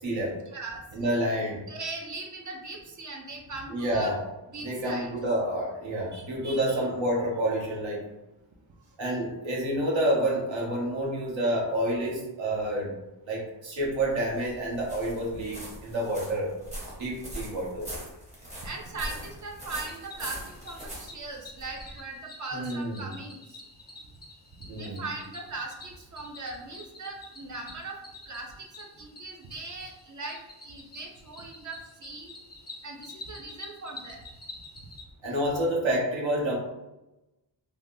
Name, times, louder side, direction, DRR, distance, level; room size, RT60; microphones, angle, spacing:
voice 1, 0.0-0.4 0.9-1.6 3.7-4.2 4.6-8.0 9.0-12.9 13.3-16.5 17.0-17.9 22.5-23.1 24.7-25.1 35.2-36.6, right 1 dB, 75° right, -3 dB, 1.0 m, -28 dB
voice 2, 0.5-1.2 1.7-4.1 4.5-5.1 6.1-6.8 18.6-23.6 24.6-28.0 28.3-32.3 32.8-34.2, right 3 dB, 40° right, 1 dB, 0.5 m, -39 dB
sound 1, 13.8-22.0, equal, 15° right, 0.9 m, -42 dB
Cricket, 19.8-35.0, left 2 dB, 25° left, 0.4 m, -48 dB
3.3 x 2.2 x 2.5 m, 0.97 s
wide cardioid pair, 150°, 46 cm